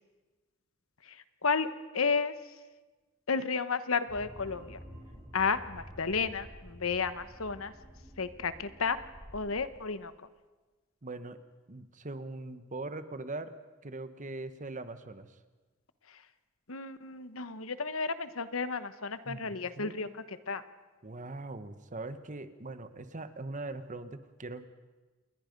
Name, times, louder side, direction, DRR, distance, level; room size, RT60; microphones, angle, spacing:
voice 1, 1.0-1.7 1.9-2.5 3.3-4.8 5.3-7.7 8.2-9.0 9.3-10.1 16.1-16.2 16.7-20.6, left 5 dB, 75° left, 12 dB, 1.1 m, -32 dB
sound 1, 4.1-9.8, equal, 10° right, 4.5 m, -50 dB
voice 2, 11.0-11.4 11.7-13.5 13.8-15.3 19.2-20.1 21.0-24.7, right 2 dB, 35° right, 11 dB, 1.1 m, -41 dB
28.0 x 21.5 x 5.3 m, 1.3 s
head